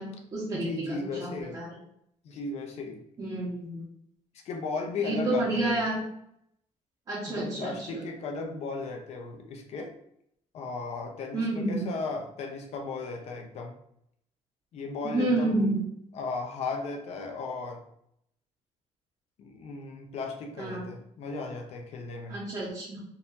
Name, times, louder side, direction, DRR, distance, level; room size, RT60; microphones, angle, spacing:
voice 1, 0.0-1.7 3.2-3.9 5.0-6.0 7.1-8.0 11.3-11.9 15.0-15.8 20.6-20.9 22.3-23.0, right 2 dB, 30° right, -8 dB, 1.0 m, -30 dB
voice 2, 0.5-1.6 2.2-3.0 4.4-5.8 7.3-9.9 10.5-13.8 14.7-15.7 16.1-17.8 19.4-22.4, left 4 dB, 55° left, 3 dB, 0.7 m, -36 dB
4.0 x 2.6 x 2.7 m, 0.72 s
cardioid pair, 150°, 13 cm